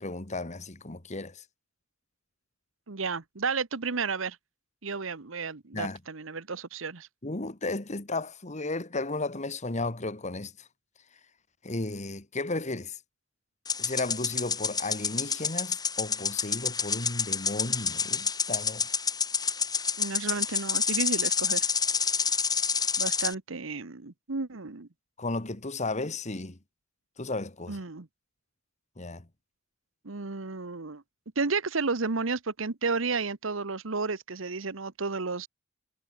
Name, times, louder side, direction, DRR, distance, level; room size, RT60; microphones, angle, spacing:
voice 1, 0.0-1.4 5.7-6.0 7.2-10.7 11.6-13.0 13.8-18.9 25.2-26.6 27.2-27.8 29.0-29.3, left 2 dB, 35° left, 1.8 m, -34 dB
voice 2, 2.9-4.4 4.8-7.1 20.0-21.7 23.0-24.9 27.7-28.1 30.0-31.0 31.4-35.5, right 4 dB, 80° right, 1.2 m, -32 dB
sound 1, 13.6-23.3, left 6 dB, 20° left, 4.1 m, -28 dB
head